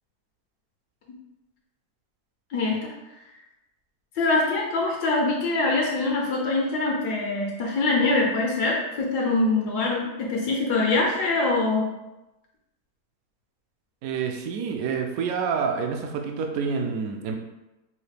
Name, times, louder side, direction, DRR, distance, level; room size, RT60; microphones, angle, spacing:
voice 1, 4.1-11.8, left 3 dB, 85° left, -2 dB, 1.4 m, -24 dB
voice 2, 14.0-17.4, right 6 dB, 70° right, 3 dB, 0.9 m, -28 dB
5.7 x 2.4 x 3.3 m, 1.0 s
omnidirectional pair, 1.7 m